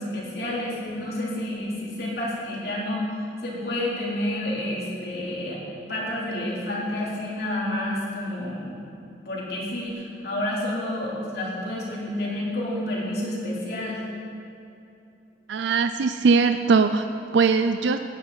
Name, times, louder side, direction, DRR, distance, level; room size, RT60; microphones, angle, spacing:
voice 1, 0.0-3.1 3.4-5.6 5.9-8.8 9.3-14.0, left 1 dB, 60° left, -5 dB, 3.3 m, -29 dB
voice 2, 15.5-17.1 17.3-18.0, right 4 dB, 80° right, 9 dB, 0.4 m, -20 dB
18.5 x 9.9 x 4.0 m, 2.8 s
head